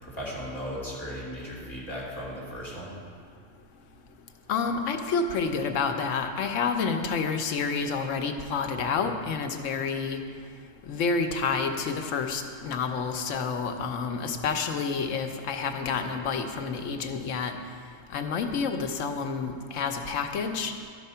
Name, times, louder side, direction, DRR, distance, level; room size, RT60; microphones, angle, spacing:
voice 1, 0.0-2.9, equal, 20° left, -6 dB, 2.5 m, -36 dB
voice 2, 4.5-10.2 10.9-17.5 18.1-20.7, left 5 dB, 85° left, 5 dB, 1.1 m, -29 dB
11.5 x 5.0 x 5.5 m, 2.1 s
omnidirectional pair, 1.3 m